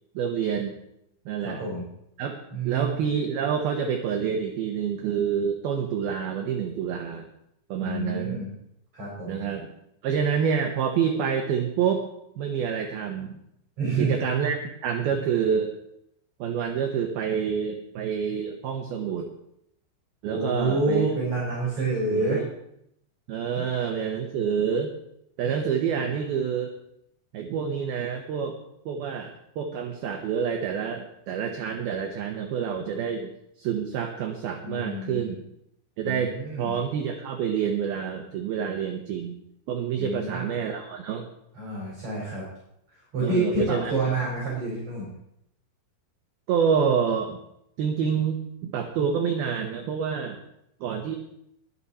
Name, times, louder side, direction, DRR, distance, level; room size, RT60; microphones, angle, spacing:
voice 1, 0.1-0.8 1.3-1.6 2.2-2.4 2.6-7.3 7.7-8.4 9.3-9.7 10.0-12.1 12.4-13.4 14.0-15.7 16.4-19.3 20.2-21.1 22.1-22.5 23.3-24.9 25.4-26.7 27.3-28.6 28.9-33.3 33.6-35.4 36.0-39.4 39.7-41.3 43.2-43.9 46.5-47.4 47.8-50.4 50.8-51.2, right 7 dB, 70° right, 3 dB, 2.4 m, -27 dB
voice 2, 1.4-1.8 2.5-3.0 7.8-8.5 8.9-9.4 13.8-14.1 14.4-14.5 20.2-22.4 23.6-23.7 34.6-35.3 36.0-36.8 40.0-40.5 41.5-42.4 43.1-45.1, right 2 dB, 35° right, -6 dB, 5.7 m, -28 dB
22.0 x 7.5 x 4.3 m, 0.77 s
omnidirectional pair, 5.6 m